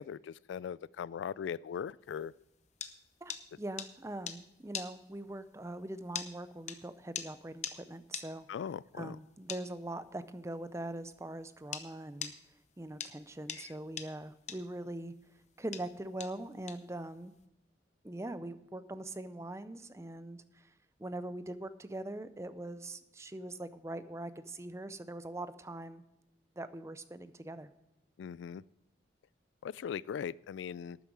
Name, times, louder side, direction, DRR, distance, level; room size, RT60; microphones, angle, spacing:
voice 1, 0.0-2.3 8.5-9.2 13.5-13.7 28.2-28.6 29.6-31.0, left 7 dB, 90° left, 22 dB, 0.3 m, -39 dB
sound 1, 2.2-11.9 12.2-17.4, left 8 dB, 40° left, 0.8 m, -42 dB
voice 2, 3.2-8.5 8.9-12.3 12.8-15.1 15.6-17.3 18.0-20.7 21.0-26.0 26.6-27.7, right 1 dB, 15° right, 12 dB, 0.5 m, -42 dB
12.5 x 9.2 x 4.7 m, 0.89 s
head